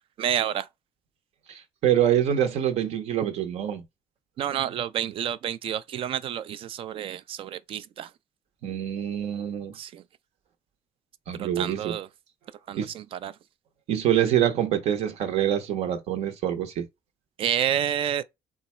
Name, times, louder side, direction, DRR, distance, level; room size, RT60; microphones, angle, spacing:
voice 1, 0.2-0.7 4.4-8.1 9.7-10.0 11.4-12.1 12.7-13.4 17.4-18.2, right 10 dB, 50° right, 0.4 m, -29 dB
voice 2, 1.5-3.8 8.6-9.7 11.3-11.9 12.8-12.9 13.9-16.9, right 10 dB, 70° right, 0.9 m, -25 dB
3.9 x 2.3 x 4.2 m
cardioid pair, 140°, 12 cm